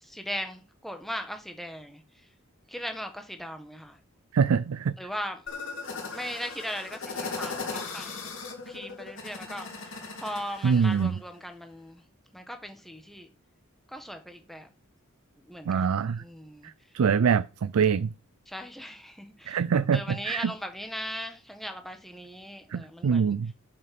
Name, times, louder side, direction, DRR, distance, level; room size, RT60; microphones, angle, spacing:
voice 1, 0.0-2.3 2.7-4.0 5.0-5.5 6.1-8.3 8.6-12.0 12.3-13.3 13.9-14.7 15.4-16.7 18.5-23.4, equal, ahead, 1.3 m, -39 dB
voice 2, 4.3-4.9 10.6-11.1 15.7-16.2 16.6-18.1 19.5-20.5 22.7-23.5, right 6 dB, 90° right, 0.4 m, -24 dB
sound 1, 5.5-11.1, left 4 dB, 60° left, 2.7 m, -38 dB
7.5 x 5.9 x 5.9 m
head